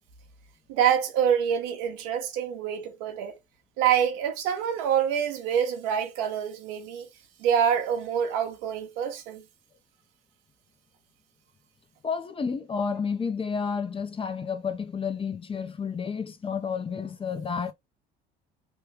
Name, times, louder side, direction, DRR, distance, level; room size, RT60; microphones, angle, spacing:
voice 1, 0.7-3.3 3.8-7.1 7.4-9.4, right 8 dB, 80° right, 0.8 m, -26 dB
voice 2, 12.0-17.7, left 6 dB, 25° left, 0.6 m, -31 dB
3.1 x 2.3 x 3.2 m
supercardioid pair, 80°, 21 cm